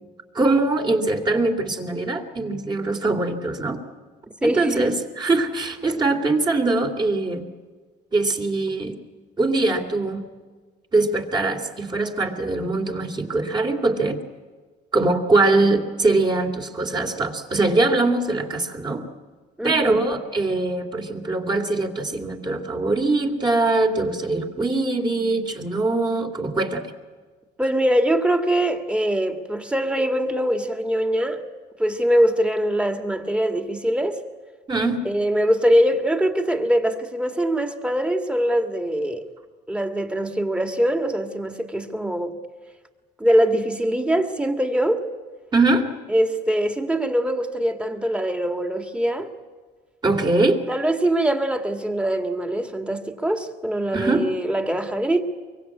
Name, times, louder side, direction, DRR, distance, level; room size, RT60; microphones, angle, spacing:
voice 1, 0.3-3.8 4.4-7.4 8.1-9.0 9.4-10.2 10.9-14.2 14.9-19.0 19.6-26.9 34.7-35.0 45.5-45.9 50.0-50.6 53.9-54.2, right 2 dB, 25° right, 2.8 m, -22 dB
voice 2, 4.4-4.9 19.6-20.0 27.6-31.4 31.8-34.2 35.1-39.3 39.7-42.4 43.2-45.0 46.1-49.3 50.7-55.3, right 1 dB, 5° right, 2.1 m, -22 dB
24.0 x 23.5 x 8.6 m
cardioid pair, 110°, 17 cm